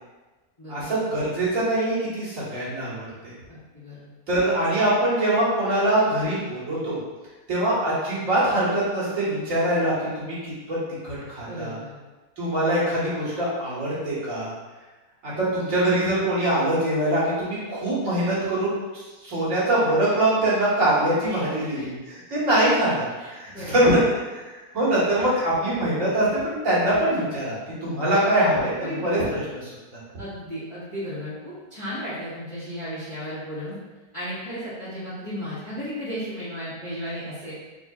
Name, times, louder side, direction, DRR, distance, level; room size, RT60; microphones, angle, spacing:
voice 1, 0.7-3.3 4.3-7.0 7.5-10.4 10.7-10.8 11.0-11.8 12.4-14.5 15.2-18.8 19.2-21.9 22.3-27.5 27.8-30.0, right 1 dB, 55° right, -8 dB, 1.8 m, -23 dB
voice 2, 3.5-4.0 11.4-11.9 21.3-21.9 23.2-23.7 28.7-29.0 30.2-33.7 34.1-37.5, equal, 20° left, -14 dB, 1.5 m, -35 dB
4.8 x 3.7 x 2.4 m, 1.2 s
omnidirectional pair, 1.7 m